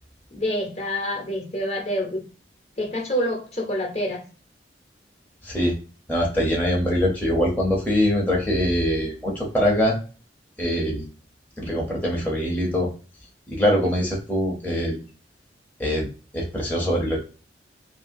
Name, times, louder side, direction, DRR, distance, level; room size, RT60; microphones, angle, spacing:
voice 1, 0.3-2.2 2.8-4.2, equal, 35° left, 1 dB, 0.9 m, -27 dB
voice 2, 5.4-5.7 6.1-10.0 10.6-11.0 11.6-12.9 13.5-15.0 15.8-16.1 16.3-17.2, equal, 10° left, -3 dB, 0.7 m, -23 dB
2.8 x 2.7 x 2.5 m, 0.36 s
head